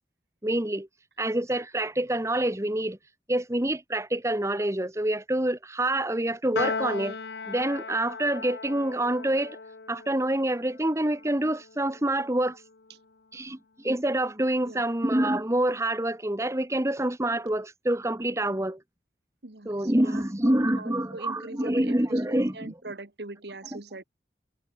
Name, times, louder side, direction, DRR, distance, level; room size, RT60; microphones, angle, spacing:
voice 1, 0.4-0.9 1.2-3.0 3.3-7.2 7.5-9.6 9.9-12.6 13.3-18.8 19.6-22.7 23.7-23.8, right 1 dB, 15° right, 1.4 m, -27 dB
Piano, 6.6-13.1, left 4 dB, 75° left, 1.0 m, -37 dB
voice 2, 19.4-24.0, right 2 dB, 70° right, 1.6 m, -42 dB
head